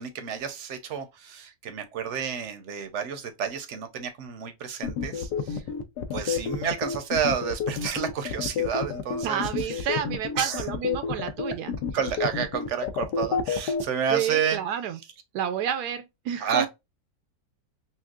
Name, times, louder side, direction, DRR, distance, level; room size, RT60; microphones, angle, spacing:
voice 1, 0.0-5.6 6.1-9.9 10.4-10.7 11.9-14.6 16.4-16.7, right 7 dB, 55° right, 0.9 m, -30 dB
sound 1, 4.8-13.8, left 7 dB, 85° left, 1.3 m, -29 dB
voice 2, 9.2-11.7 14.1-15.0 15.3-16.7, right 9 dB, 80° right, 1.1 m, -30 dB
5.8 x 2.3 x 2.4 m
omnidirectional pair, 1.7 m